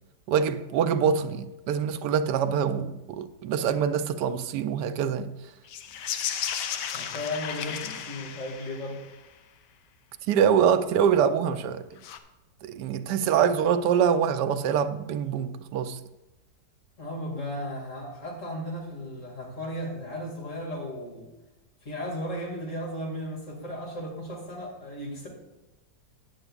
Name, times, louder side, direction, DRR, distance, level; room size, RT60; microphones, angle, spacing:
voice 1, 0.3-5.3 10.3-12.0 12.6-16.0, right 7 dB, 85° right, 1.2 m, -25 dB
sound 1, 5.7-9.2 12.0-12.2, left 8 dB, 85° left, 1.3 m, -34 dB
voice 2, 6.9-9.0 13.4-13.5 17.0-21.3 21.8-25.3, left 1 dB, 50° left, 2.6 m, -35 dB
14.0 x 9.8 x 2.4 m
omnidirectional pair, 1.8 m